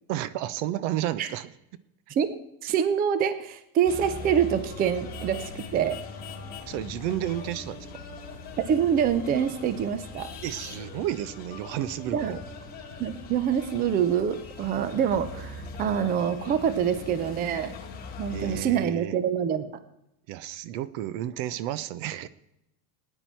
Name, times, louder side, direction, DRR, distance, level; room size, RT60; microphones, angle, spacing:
voice 1, 0.1-1.5 6.6-8.0 10.4-12.4 18.3-19.2 20.3-22.3, right 13 dB, 60° right, 17 dB, 0.7 m, -32 dB
voice 2, 2.1-6.0 8.6-10.3 12.1-12.4 13.0-17.8 18.2-19.8, right 8 dB, 20° right, 12 dB, 0.5 m, -26 dB
sound 1, 3.8-18.6, left 3 dB, 20° left, 2.2 m, -41 dB
18.5 x 9.8 x 4.5 m, 0.84 s
cardioid pair, 160°, 43 cm